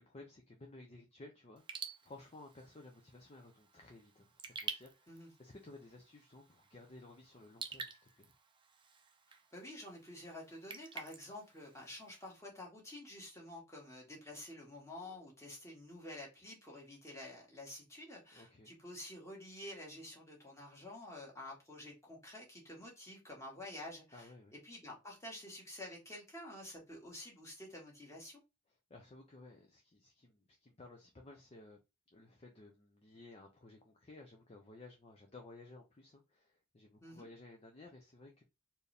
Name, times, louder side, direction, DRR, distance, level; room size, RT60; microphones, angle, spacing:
voice 1, 0.0-4.3 4.6-7.9 8.2-8.3 18.3-18.7 24.1-24.5 28.9-31.8 32.1-38.4, left 2 dB, 30° left, 0.6 m, -56 dB
Raindrop / Drip, 1.6-12.3, right 5 dB, 25° right, 0.6 m, -50 dB
voice 2, 9.5-24.3 24.6-28.4 37.0-37.3, left 1 dB, 15° left, 1.7 m, -49 dB
4.4 x 2.7 x 3.4 m
head